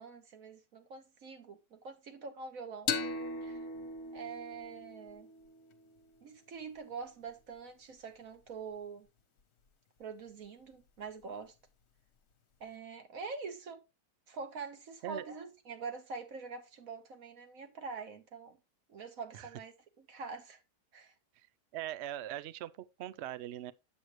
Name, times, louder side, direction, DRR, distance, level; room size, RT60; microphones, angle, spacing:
voice 1, 0.0-3.1 3.4-3.7 4.1-5.3 6.2-9.1 10.0-11.5 12.6-13.8 14.3-18.6 18.9-20.6 20.9-21.1, right 5 dB, 55° right, 1.6 m, -45 dB
sound 1, 2.9-6.2, left 4 dB, 65° left, 1.4 m, -39 dB
voice 2, 21.7-23.7, right 12 dB, 90° right, 0.6 m, -41 dB
8.6 x 7.8 x 3.0 m
omnidirectional pair, 1.8 m